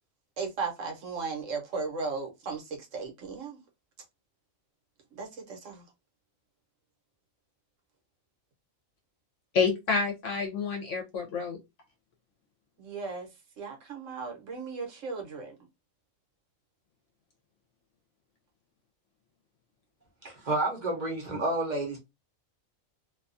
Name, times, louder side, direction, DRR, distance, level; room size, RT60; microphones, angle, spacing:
voice 1, 0.4-3.6 5.1-5.8 12.8-13.3 13.6-15.5, right 4 dB, 70° right, 1.1 m, -36 dB
voice 2, 9.5-11.6, left 5 dB, 65° left, 0.9 m, -28 dB
voice 3, 20.2-22.0, right 2 dB, 40° right, 0.7 m, -30 dB
2.6 x 2.3 x 2.4 m
omnidirectional pair, 1.4 m